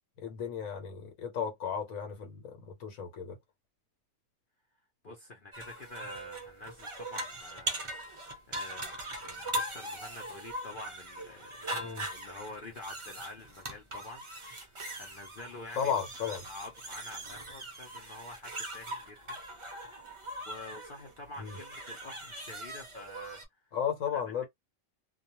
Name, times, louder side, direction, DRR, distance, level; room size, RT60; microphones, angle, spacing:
voice 1, 0.2-3.4 11.7-12.1 15.8-16.4 21.4-21.6 23.7-24.4, left 7 dB, 75° left, 1.2 m, -34 dB
voice 2, 5.0-8.2 8.5-19.4 20.5-23.4 24.1-24.4, left 2 dB, 50° left, 0.7 m, -48 dB
sound 1, 5.5-23.4, right 1 dB, 40° right, 0.4 m, -41 dB
2.3 x 2.3 x 2.8 m
omnidirectional pair, 1.4 m